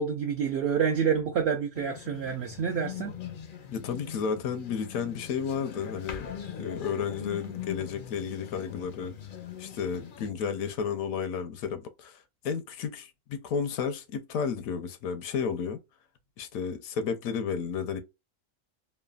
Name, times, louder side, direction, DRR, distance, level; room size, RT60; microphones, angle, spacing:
voice 1, 0.0-3.1, right 7 dB, 65° right, 0.7 m, -28 dB
sound 1, 1.7-10.3, left 8 dB, 60° left, 0.5 m, -41 dB
voice 2, 3.7-6.3 6.6-9.2 9.6-15.8 16.4-18.0, left 6 dB, 80° left, 1.0 m, -32 dB
3.2 x 2.1 x 2.2 m
omnidirectional pair, 1.4 m